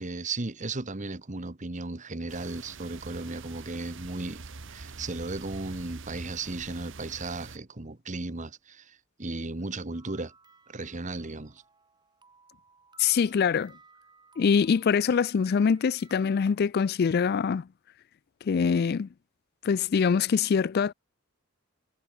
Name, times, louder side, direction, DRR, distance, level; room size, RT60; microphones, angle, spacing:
voice 1, 0.0-4.4 4.7-10.3 10.7-11.6, right 2 dB, 35° right, 1.2 m, -35 dB
sound 1, 2.3-7.6, right 4 dB, 60° right, 1.2 m, -45 dB
sound 2, 9.9-16.5, right 4 dB, 20° right, 3.6 m, -59 dB
voice 2, 13.0-13.7 14.4-17.7 18.4-19.1 19.6-20.9, left 6 dB, 50° left, 0.3 m, -24 dB
head